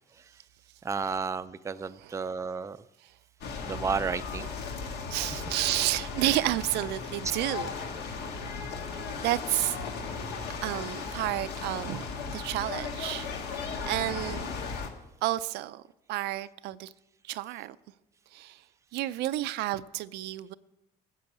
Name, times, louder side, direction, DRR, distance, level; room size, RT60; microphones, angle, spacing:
voice 1, 0.8-2.8 3.6-4.5, right 5 dB, 15° right, 0.4 m, -32 dB
voice 2, 1.8-2.1 5.1-7.7 8.9-9.8 10.6-13.3 13.8-14.5 15.2-16.9 17.2-17.8 18.3-18.6 18.9-20.5, right 15 dB, 85° right, 0.5 m, -31 dB
sound 1, 3.4-14.9, left 5 dB, 75° left, 1.7 m, -36 dB
14.0 x 7.6 x 6.1 m
cardioid pair, 110°, 17 cm